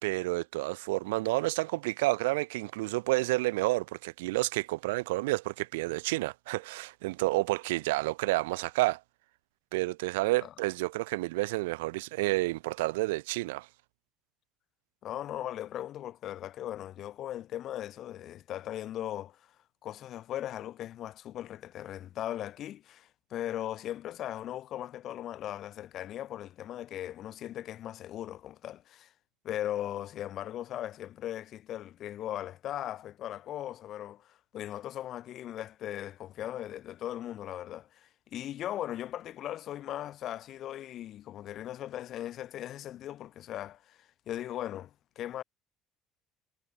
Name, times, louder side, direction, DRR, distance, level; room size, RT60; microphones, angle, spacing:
voice 1, 0.0-9.0 9.7-13.7, right 21 dB, 85° right, 2.8 m, -30 dB
voice 2, 15.0-19.4 19.8-29.1 29.4-45.4, left 12 dB, 60° left, 4.0 m, -38 dB
hypercardioid pair, 70°, 0 cm